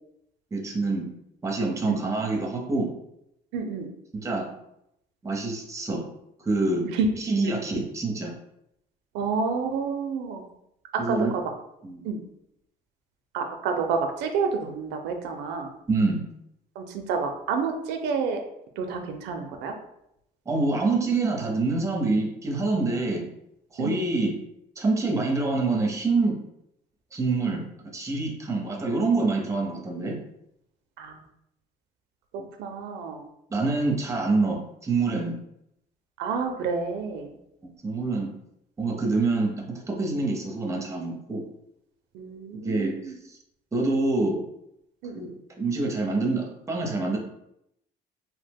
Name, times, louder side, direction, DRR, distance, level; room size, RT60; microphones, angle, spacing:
voice 1, 0.5-1.1 1.4-2.9 4.1-4.5 5.2-6.1 6.5-6.9 7.2-8.3 11.0-11.3 11.8-12.0 15.9-16.2 20.5-23.2 23.7-24.3 24.8-26.3 27.1-27.6 27.9-30.2 33.5-35.4 37.8-38.3 38.8-41.4 42.6-43.0 43.7-44.4 45.1-45.3 45.6-47.2, right 3 dB, 20° right, 2 dB, 0.6 m, -26 dB
voice 2, 3.5-3.9 6.9-7.1 7.4-7.6 9.1-10.5 11.1-11.4 12.0-12.2 13.3-15.7 16.8-18.4 18.8-19.7 23.8-23.9 31.0-31.2 32.6-33.2 36.2-37.3 42.1-43.2 45.0-45.1, right 5 dB, 90° right, 5 dB, 0.4 m, -29 dB
2.8 x 2.1 x 3.4 m, 0.78 s
cardioid pair, 110°, 17 cm